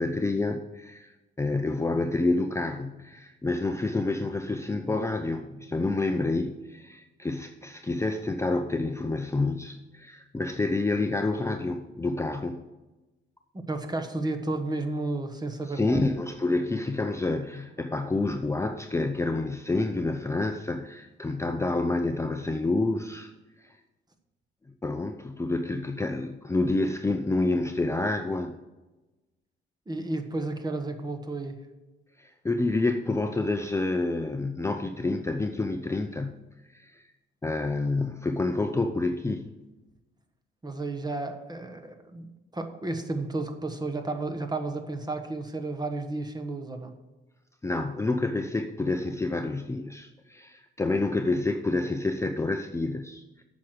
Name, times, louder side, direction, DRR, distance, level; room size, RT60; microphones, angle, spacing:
voice 1, 0.0-12.6 15.7-23.3 23.6-23.8 24.8-28.6 32.2-36.4 36.7-37.0 37.4-39.5 47.6-53.4, left 2 dB, 15° left, 6 dB, 0.6 m, -28 dB
voice 2, 13.5-16.1 29.9-31.6 40.6-42.3 42.5-46.9, right 2 dB, 20° right, 6 dB, 1.3 m, -32 dB
8.4 x 6.0 x 8.0 m, 1.1 s
cardioid pair, 90°, 20 cm